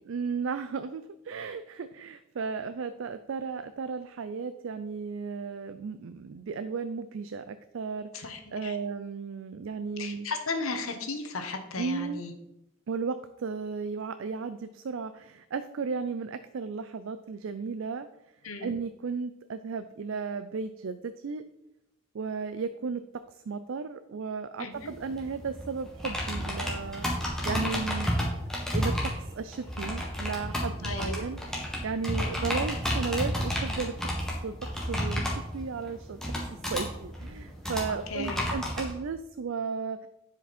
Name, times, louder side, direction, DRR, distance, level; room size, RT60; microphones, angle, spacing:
voice 1, 0.1-10.3 11.8-12.2 12.9-18.1 18.6-21.4 22.1-23.0 23.3-28.2 28.7-33.9 34.4-34.5 34.9-36.2 36.7-40.1, right 5 dB, 65° right, 10 dB, 0.4 m, -35 dB
voice 2, 8.1-8.8 10.0-12.3 18.4-18.7 24.6-24.9 30.8-31.2 38.1-38.4, left 3 dB, 80° left, 6 dB, 1.2 m, -35 dB
sound 1, 24.7-38.9, equal, 5° left, 1.5 m, -32 dB
10.0 x 5.1 x 4.2 m, 0.85 s
head